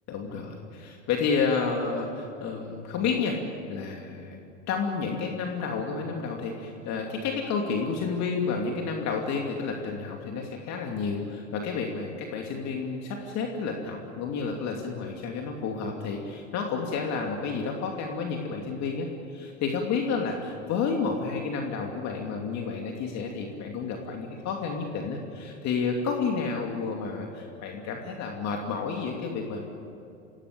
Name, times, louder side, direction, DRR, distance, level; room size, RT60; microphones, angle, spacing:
voice 1, 0.1-3.4 3.7-4.4 4.7-29.6, left 5 dB, 45° left, 1 dB, 2.8 m, -30 dB
26.0 x 17.0 x 8.8 m, 2.5 s
hypercardioid pair, 90°, 36 cm